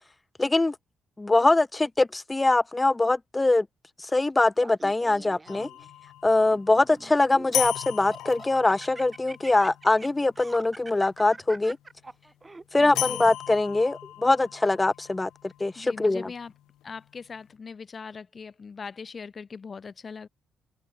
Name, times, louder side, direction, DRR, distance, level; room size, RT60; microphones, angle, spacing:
voice 1, 0.4-0.7 1.2-3.7 4.0-5.7 6.2-11.8 12.7-16.3, left 2 dB, 15° left, 0.7 m, -23 dB
Laughter, 4.6-5.9 6.5-7.6 8.0-13.0, right 3 dB, 20° right, 1.2 m, -44 dB
sound 1, 5.5-11.6 13.0-17.0, left 14 dB, 85° left, 0.5 m, -37 dB
voice 2, 12.8-13.3 15.8-16.5 16.8-20.3, left 5 dB, 40° left, 3.8 m, -40 dB
open air
cardioid pair, 90°, 0 cm